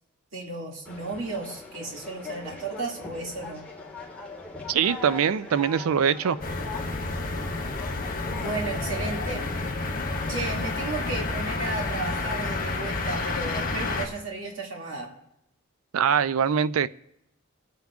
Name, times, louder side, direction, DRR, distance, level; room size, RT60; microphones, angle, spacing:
voice 1, 0.3-3.7 8.3-9.5 10.3-15.1, right 2 dB, 65° right, 2.4 m, -34 dB
Conversation, 0.9-13.9, left 3 dB, 5° left, 1.8 m, -42 dB
voice 2, 4.7-6.4 15.9-16.9, right 7 dB, 85° right, 0.4 m, -23 dB
sound 1, 6.4-14.1, left 3 dB, 45° left, 1.5 m, -30 dB
26.5 x 9.3 x 2.4 m
head